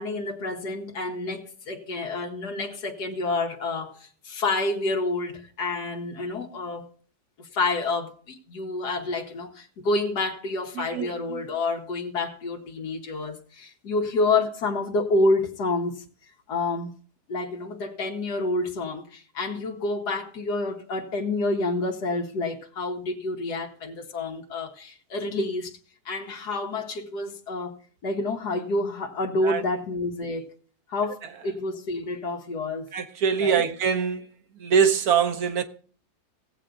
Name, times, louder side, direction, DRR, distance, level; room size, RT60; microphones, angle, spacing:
voice 1, 0.0-6.9 7.4-16.0 16.5-16.9 17.3-25.8 26.1-27.8 28.0-30.5 30.9-32.9 33.4-33.6, left 2 dB, 90° left, 1.8 m, -28 dB
voice 2, 10.7-11.1 29.4-29.6 32.9-34.3 34.6-35.6, right 7 dB, 70° right, 1.5 m, -23 dB
17.5 x 8.1 x 3.8 m
omnidirectional pair, 1.7 m